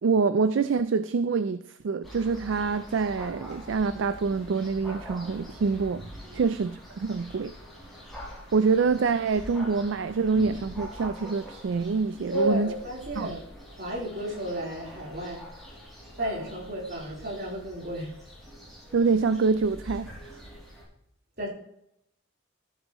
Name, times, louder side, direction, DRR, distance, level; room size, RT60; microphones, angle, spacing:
voice 1, 0.0-6.0 6.3-7.5 8.5-12.7 13.2-13.3 18.9-20.4, right 4 dB, 70° right, 0.4 m, -26 dB
sound 1, 2.0-20.8, equal, ahead, 5.1 m, -44 dB
voice 2, 12.3-15.5 16.2-18.2 21.4-21.5, right 1 dB, 50° right, 3.8 m, -33 dB
14.0 x 9.5 x 3.1 m
head